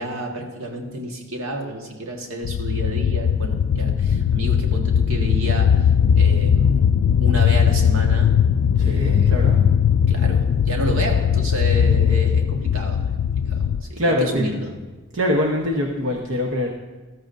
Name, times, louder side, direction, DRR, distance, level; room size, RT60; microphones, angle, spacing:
voice 1, 0.0-6.9 7.2-8.4 8.8-9.4 10.1-14.8, right 1 dB, 85° right, 2 dB, 1.6 m, -30 dB
sound 1, 2.4-13.8, left 8 dB, 85° left, 0.3 m, -19 dB
voice 2, 8.8-9.7 14.0-14.5 15.1-16.7, left 1 dB, 65° right, 0 dB, 1.0 m, -23 dB
14.0 x 13.5 x 2.6 m, 1.3 s
head